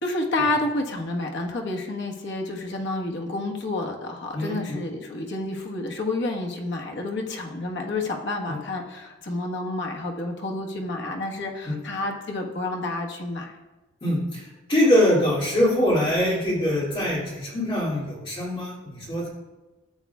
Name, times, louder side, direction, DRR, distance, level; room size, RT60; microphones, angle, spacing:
voice 1, 0.0-13.5, left 2 dB, 60° left, 0 dB, 1.3 m, -29 dB
voice 2, 4.3-4.8 8.5-8.6 11.6-11.8 14.0-19.3, left 1 dB, 25° left, -6 dB, 2.6 m, -23 dB
13.5 x 8.1 x 2.4 m, 1.2 s
head